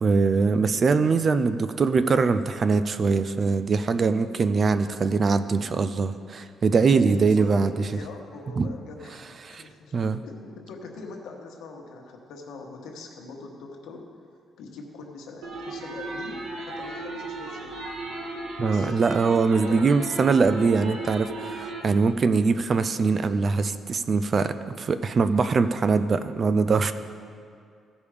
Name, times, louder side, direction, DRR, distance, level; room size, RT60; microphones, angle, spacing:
voice 1, 0.0-7.9 8.6-8.7 9.4-9.6 9.9-10.2 18.6-26.9, right 4 dB, 30° right, 11 dB, 0.3 m, -22 dB
voice 2, 6.9-9.2 9.5-9.9 10.2-14.1 14.6-17.8 18.6-18.9 19.6-20.0, left 3 dB, 85° left, 1 dB, 1.3 m, -43 dB
sound 1, 15.4-21.8, right 2 dB, 75° right, 1.3 m, -35 dB
15.5 x 5.2 x 4.9 m, 2.2 s
cardioid pair, 170°, 0 cm